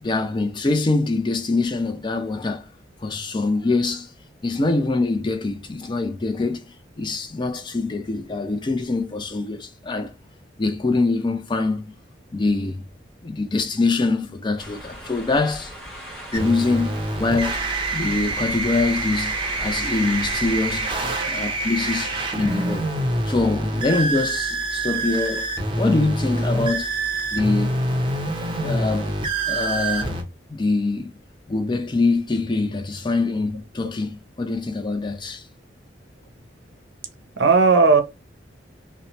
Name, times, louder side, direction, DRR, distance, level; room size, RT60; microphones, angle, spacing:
voice 1, 0.0-2.7 3.0-4.1 4.4-6.6 7.0-10.1 10.6-11.9 12.3-12.8 13.2-15.7 16.3-21.0 21.2-22.9 23.2-26.9 27.3-27.8 28.6-29.1 29.5-30.2 30.5-31.1 31.5-35.5, left 3 dB, 25° left, 0.4 m, -24 dB
sound 1, 14.6-21.0, equal, 5° left, 1.0 m, -39 dB
sound 2, 16.3-30.2, right 2 dB, 25° right, 0.5 m, -26 dB
voice 2, 21.0-21.3 37.4-38.0, right 4 dB, 70° right, 0.6 m, -16 dB
2.9 x 2.1 x 2.9 m
head